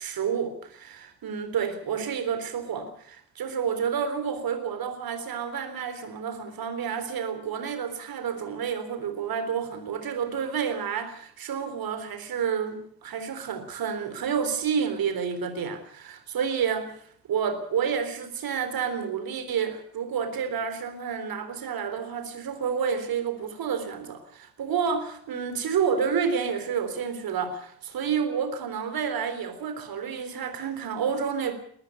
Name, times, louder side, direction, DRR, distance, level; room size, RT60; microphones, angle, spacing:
voice 1, 0.0-17.0 17.3-31.5, right 7 dB, 50° right, 3.8 m, -29 dB
22.5 x 14.0 x 8.3 m
figure-of-eight pair, 45°, 47 cm